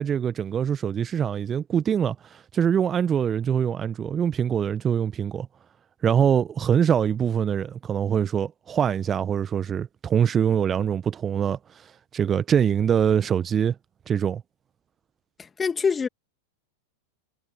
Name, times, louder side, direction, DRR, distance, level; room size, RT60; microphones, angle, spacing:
voice 1, 0.0-5.5 6.0-13.7 14.1-14.4, right 8 dB, 25° right, 1.2 m, -24 dB
voice 2, 15.4-16.1, left 5 dB, 15° left, 2.3 m, -25 dB
figure-of-eight pair, 90°, 0 cm